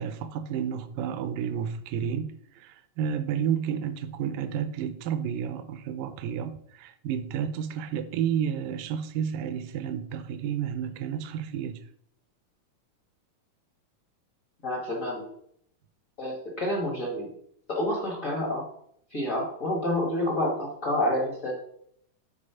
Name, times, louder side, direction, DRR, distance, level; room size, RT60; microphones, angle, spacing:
voice 1, 0.0-11.8, right 8 dB, 80° right, 2.2 m, -31 dB
voice 2, 14.6-15.3 16.2-17.3 17.7-18.6 19.1-21.5, left 1 dB, 65° left, 0.8 m, -28 dB
8.6 x 4.0 x 5.6 m
omnidirectional pair, 4.0 m